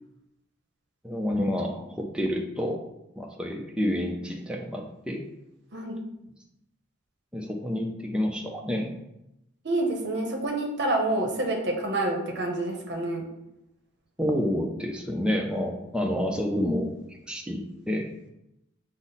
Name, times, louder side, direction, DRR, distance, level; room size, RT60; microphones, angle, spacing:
voice 1, 1.0-2.8 3.2-5.2 7.3-8.9 14.2-18.1, equal, 5° right, 1 dB, 0.4 m, -29 dB
voice 2, 9.6-13.2, right 2 dB, 55° right, 1 dB, 0.7 m, -28 dB
5.2 x 2.0 x 4.0 m, 0.85 s
head